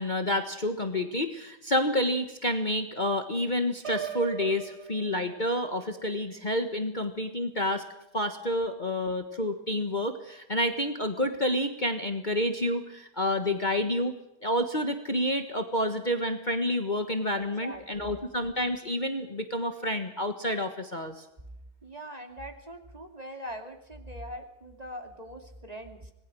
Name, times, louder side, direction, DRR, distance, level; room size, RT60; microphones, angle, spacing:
voice 1, 0.0-7.8 8.1-14.1 14.4-21.2, left 1 dB, 30° left, 6 dB, 1.6 m, -29 dB
Piano, 3.8-5.8, right 8 dB, 85° right, 4.5 m, -39 dB
voice 2, 17.4-18.3 21.8-26.1, equal, 25° right, 5 dB, 2.7 m, -42 dB
26.0 x 20.0 x 6.3 m, 0.89 s
omnidirectional pair, 1.7 m